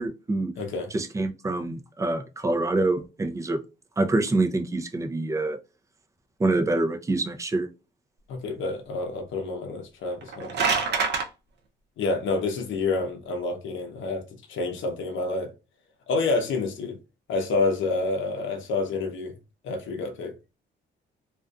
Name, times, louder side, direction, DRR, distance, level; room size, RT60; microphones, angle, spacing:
voice 1, 0.0-0.5 0.9-3.6 4.0-5.6 6.4-7.7, right 2 dB, 15° right, 0.5 m, -26 dB
voice 2, 0.6-0.9 8.3-10.8 12.0-14.2 14.5-15.5 16.1-17.0 17.3-19.3 19.6-20.3, left 3 dB, 75° left, 0.7 m, -28 dB
sound 1, 10.1-11.3, right 5 dB, 60° right, 0.6 m, -25 dB
2.5 x 2.4 x 2.3 m
cardioid pair, 90°, 20 cm